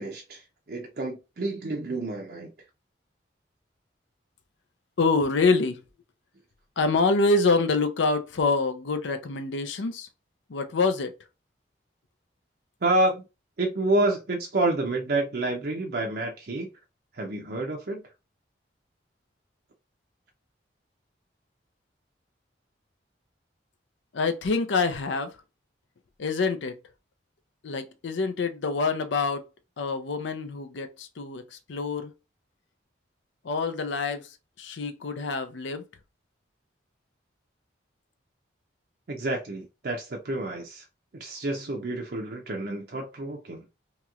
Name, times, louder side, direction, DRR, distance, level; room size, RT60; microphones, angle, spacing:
voice 1, 0.0-2.5 12.8-13.2 13.6-16.7 17.1-18.0 39.1-40.8 41.1-43.7, right 2 dB, 55° right, 0.5 m, -29 dB
voice 2, 5.0-5.8 6.8-10.1 10.5-11.1 24.1-25.4 26.2-26.8 27.6-29.4 29.8-32.1 33.4-35.9, left 3 dB, 75° left, 0.5 m, -26 dB
3.0 x 2.9 x 2.3 m
head